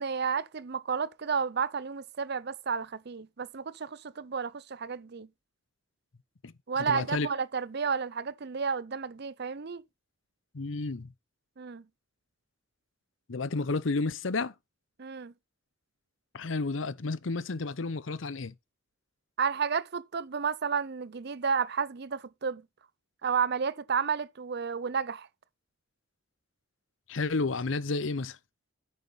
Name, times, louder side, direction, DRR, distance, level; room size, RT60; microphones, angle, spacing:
voice 1, 0.0-5.3 6.7-9.8 11.6-11.8 15.0-15.3 19.4-22.6 23.2-25.3, right 6 dB, 55° right, 0.6 m, -31 dB
voice 2, 6.9-7.3 10.5-11.1 13.3-14.5 16.3-18.5 27.1-28.4, left 3 dB, 75° left, 0.8 m, -31 dB
9.5 x 7.5 x 4.0 m
head